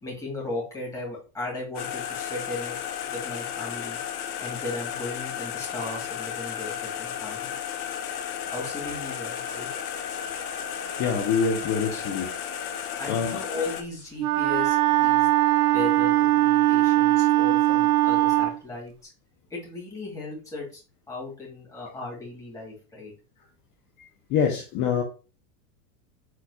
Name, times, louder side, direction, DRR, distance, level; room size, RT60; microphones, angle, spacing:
voice 1, 0.0-4.0 4.4-7.5 8.5-9.7 13.0-15.3 15.7-18.9 19.5-20.8 21.1-23.1, left 2 dB, 5° left, -4 dB, 2.4 m, -36 dB
sound 1, 1.7-13.8, left 9 dB, 85° left, 0.8 m, -33 dB
voice 2, 11.0-12.3 13.1-13.4 24.3-25.0, left 6 dB, 40° left, 1 dB, 0.9 m, -25 dB
Wind instrument woodwind instrument, 14.2-18.6, right 16 dB, 90° right, 0.5 m, -20 dB
4.5 x 4.1 x 2.4 m, 0.35 s
supercardioid pair, 120°, 45 cm